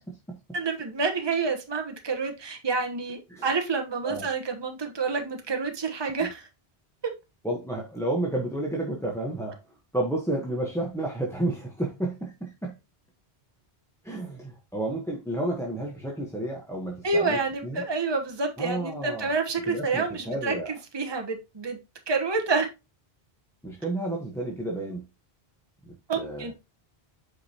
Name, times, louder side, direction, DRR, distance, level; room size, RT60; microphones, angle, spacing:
voice 1, 0.0-0.4 3.3-3.5 4.0-4.3 7.4-9.6 9.9-12.8 14.0-17.8 18.6-19.4 19.7-20.7 23.6-25.0 26.2-26.5, right 1 dB, 5° left, -1 dB, 1.1 m, -31 dB
voice 2, 0.5-6.5 17.0-21.8 22.1-22.7 26.1-26.5, right 4 dB, 25° right, 4 dB, 1.1 m, -28 dB
8.1 x 5.1 x 2.9 m, 0.25 s
omnidirectional pair, 1.0 m